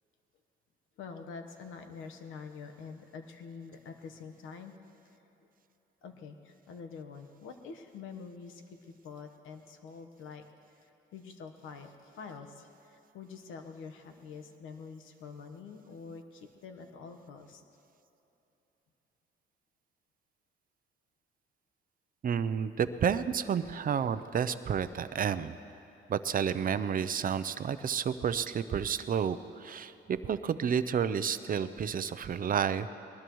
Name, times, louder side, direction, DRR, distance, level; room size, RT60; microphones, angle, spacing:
voice 1, 1.0-4.7 6.0-10.5 10.8-17.6, left 5 dB, 85° left, 6 dB, 1.2 m, -46 dB
voice 2, 22.2-25.5 26.1-32.9, right 7 dB, 45° right, 12 dB, 0.6 m, -30 dB
21.5 x 19.5 x 3.1 m, 3.0 s
cardioid pair, 90°, 20 cm